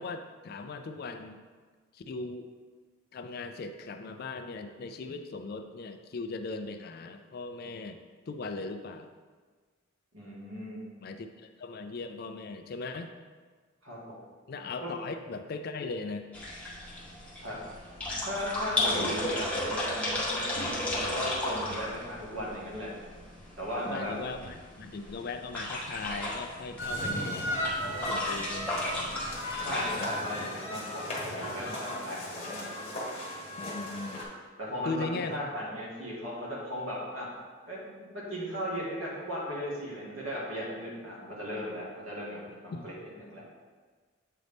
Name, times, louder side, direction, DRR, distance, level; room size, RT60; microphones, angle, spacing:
voice 1, 0.0-1.4 1.9-2.5 3.1-8.0 8.3-9.1 11.0-13.1 14.5-16.3 18.8-19.1 23.8-27.5 28.0-29.3 29.6-30.1 33.6-34.3 34.8-35.4 42.7-42.9, left 3 dB, 50° left, 7 dB, 0.4 m, -39 dB
voice 2, 10.1-10.8 13.8-14.0 14.8-14.9 17.4-17.6 18.2-22.9 23.6-24.1 29.6-32.7 34.6-37.3 37.7-43.4, equal, 75° right, -5 dB, 1.8 m, -37 dB
sound 1, 16.3-29.9, left 1 dB, 5° left, 0.9 m, -34 dB
sound 2, 26.8-34.2, left 1 dB, 30° left, 1.2 m, -35 dB
7.5 x 3.9 x 3.5 m, 1.5 s
head